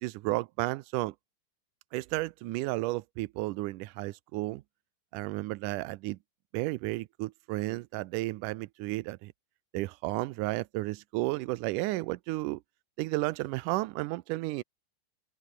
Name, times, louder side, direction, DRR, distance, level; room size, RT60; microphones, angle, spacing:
voice 1, 0.0-1.1 1.9-4.6 5.1-6.2 6.5-9.3 9.7-12.6 13.0-14.6, right 20 dB, 85° right, 1.9 m, -33 dB
open air
omnidirectional pair, 4.2 m